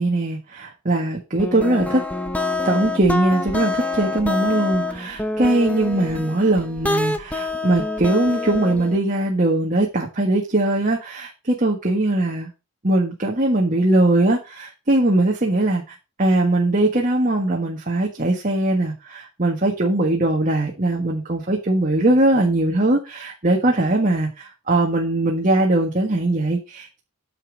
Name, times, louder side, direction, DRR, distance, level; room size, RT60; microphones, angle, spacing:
voice 1, 0.0-2.0 2.6-12.5 12.8-15.8 16.2-27.0, right 2 dB, 35° right, 0 dB, 1.6 m, -20 dB
sound 1, 1.4-9.0, left 2 dB, 5° left, 0.9 m, -26 dB
9.7 x 5.4 x 5.1 m, 0.28 s
head